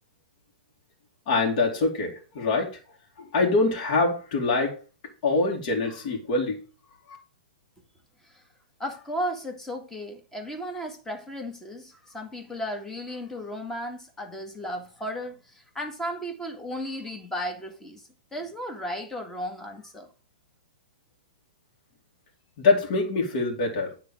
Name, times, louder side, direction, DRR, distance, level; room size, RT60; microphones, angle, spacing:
voice 1, 1.3-2.8 3.2-4.8 5.0-6.6 7.1-7.2 22.6-24.0, left 3 dB, 50° left, 2.6 m, -24 dB
voice 2, 8.8-20.1, equal, 10° left, 2.0 m, -35 dB
9.6 x 3.8 x 7.2 m
hypercardioid pair, 120°, 5 cm